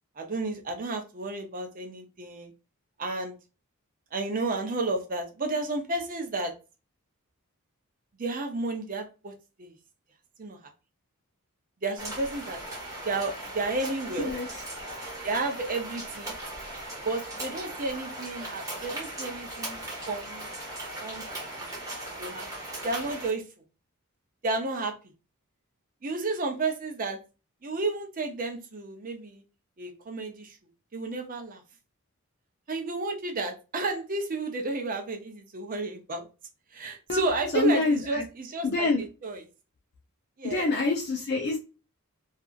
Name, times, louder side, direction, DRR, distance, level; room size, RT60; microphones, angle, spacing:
voice 1, 0.2-2.5 3.0-3.4 4.1-6.5 8.2-9.3 9.6-9.7 10.4-10.6 11.8-12.6 13.0-14.3 15.2-16.3 17.0-20.5 21.0-21.2 21.6-21.7 22.2-22.5 22.8-23.4 24.4-24.9 26.0-27.2 27.6-29.4 29.8-30.6 30.9-31.6 32.7-36.2 36.7-39.5 40.4-40.7, right 3 dB, 40° right, 3 dB, 0.6 m, -32 dB
sound 1, 12.0-23.3, right 1 dB, 15° right, 0.9 m, -38 dB
voice 2, 37.5-38.2 38.6-39.0 40.4-41.6, left 3 dB, 45° left, 0 dB, 0.5 m, -26 dB
2.7 x 2.5 x 2.3 m, 0.32 s
head